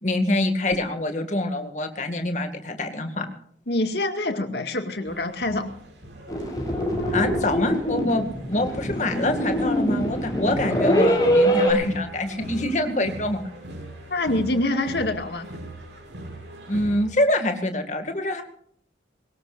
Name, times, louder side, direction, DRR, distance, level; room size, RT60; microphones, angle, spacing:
voice 1, 0.0-3.3 7.1-13.5 16.7-18.4, left 1 dB, 40° left, 6 dB, 2.2 m, -25 dB
voice 2, 3.7-5.7 14.1-15.5, left 2 dB, 65° left, 6 dB, 2.1 m, -25 dB
sound 1, 5.1-17.1, right 1 dB, 85° right, 7.0 m, -41 dB
sound 2, 6.3-11.7, equal, 20° left, 6.7 m, -23 dB
23.0 x 20.0 x 2.6 m, 0.63 s
head